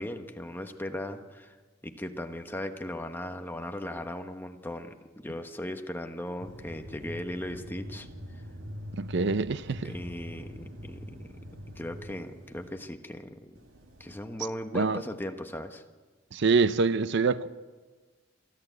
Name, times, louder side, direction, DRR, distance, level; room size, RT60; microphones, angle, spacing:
voice 1, 0.0-1.6 1.8-8.1 9.8-11.4 11.8-13.6 14.0-15.8, left 1 dB, 10° left, 1.2 m, -38 dB
sound 1, 6.4-12.8 13.6-14.2, equal, 90° right, 2.3 m, -44 dB
voice 2, 9.0-9.9 14.7-15.0 16.3-17.5, right 4 dB, 60° right, 0.6 m, -25 dB
27.0 x 11.5 x 8.2 m
head